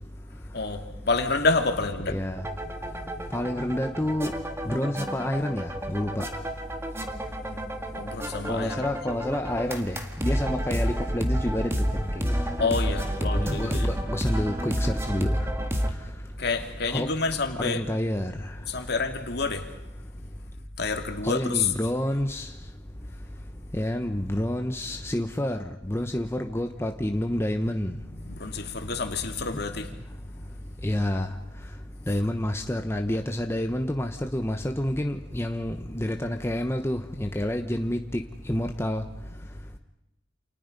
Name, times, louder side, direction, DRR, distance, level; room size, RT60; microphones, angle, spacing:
voice 1, 0.5-2.1 7.9-8.9 12.6-13.9 16.4-17.8 18.7-19.7 20.8-21.7 28.2-30.0, left 4 dB, 55° left, 2.5 m, -28 dB
voice 2, 2.1-2.4 3.3-4.3 4.6-6.3 8.5-11.7 12.2-12.4 13.2-15.3 16.9-17.1 17.6-18.3 21.2-22.5 23.7-25.6 25.8-27.9 30.8-31.3 32.1-38.2 38.5-39.0, left 1 dB, 15° left, 1.0 m, -28 dB
sound 1, 2.4-15.9, equal, 15° right, 2.0 m, -30 dB
29.0 x 28.5 x 5.3 m
head